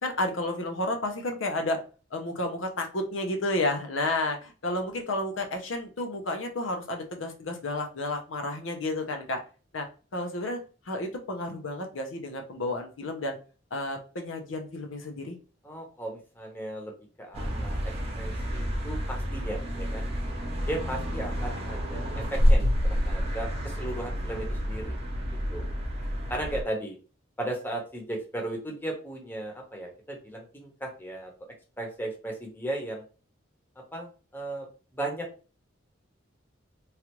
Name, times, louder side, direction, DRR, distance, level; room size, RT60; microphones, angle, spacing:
voice 1, 0.0-1.8 2.1-9.4 9.7-9.9 10.1-10.6 10.9-13.4 13.7-15.4, left 2 dB, 80° left, 4 dB, 0.7 m, -31 dB
voice 2, 15.6-16.9 17.2-17.8 18.2-20.1 20.7-25.0 25.5-25.7 26.3-27.0 27.4-31.3 31.8-33.0 33.9-34.7 34.9-35.3, right 1 dB, 10° left, 1 dB, 0.8 m, -36 dB
sound 1, 17.3-26.6, equal, 30° right, 0.8 m, -28 dB
3.2 x 2.4 x 2.9 m, 0.35 s
head